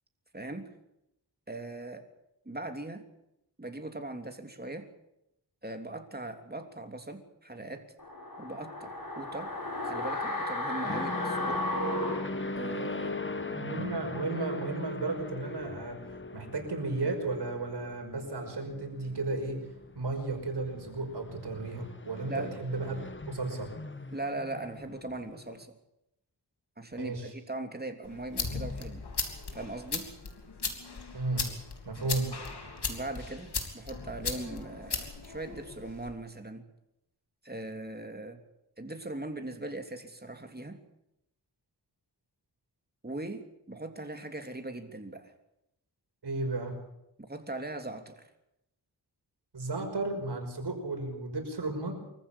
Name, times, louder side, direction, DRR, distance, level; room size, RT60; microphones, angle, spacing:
voice 1, 0.3-0.7 1.5-2.1 2.4-3.0 3.6-4.9 5.6-7.9 8.4-9.6 9.8-11.6 12.6-13.2 22.3-22.5 24.1-25.8 26.8-29.0 29.5-30.1 32.9-36.6 37.4-38.4 38.8-40.8 43.0-45.3 47.2-48.3, right 2 dB, 25° right, 6 dB, 3.1 m, -40 dB
sound 1, 8.0-13.1 13.4-13.5, left 1 dB, 55° left, 6.9 m, -34 dB
sound 2, 10.8-25.6, left 3 dB, 30° left, 1.5 m, -41 dB
voice 2, 13.5-16.0 16.3-19.6 20.0-23.0 23.3-23.7 27.0-27.3 31.1-31.5 31.8-32.3 46.2-46.8 49.5-51.9, right 3 dB, 70° right, 3 dB, 5.6 m, -34 dB
sound 3, 28.0-36.1, left 4 dB, 70° left, 3.3 m, -37 dB
24.5 x 14.5 x 8.5 m, 0.84 s
wide cardioid pair, 60°, 41 cm